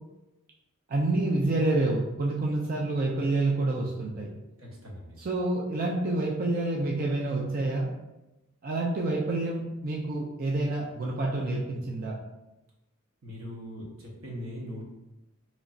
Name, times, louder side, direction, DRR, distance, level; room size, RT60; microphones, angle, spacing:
voice 1, 0.9-4.3 5.2-7.9 8.6-12.2, right 2 dB, 45° right, -2 dB, 0.4 m, -28 dB
voice 2, 4.6-5.2 13.2-14.8, equal, 85° right, -3 dB, 1.0 m, -40 dB
4.0 x 3.0 x 2.4 m, 0.98 s
head